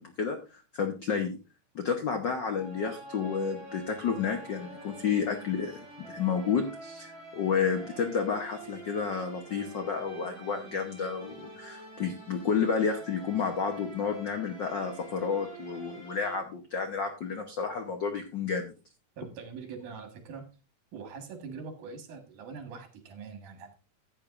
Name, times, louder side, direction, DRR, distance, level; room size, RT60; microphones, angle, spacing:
voice 1, 0.0-1.4 1.7-18.7, left 6 dB, 75° left, 5 dB, 1.0 m, -31 dB
sound 1, 2.5-16.3, right 2 dB, 10° right, 6.2 m, -47 dB
voice 2, 19.2-20.5 20.9-23.7, right 5 dB, 80° right, 5 dB, 3.2 m, -43 dB
14.5 x 8.9 x 2.5 m, 0.31 s
omnidirectional pair, 3.5 m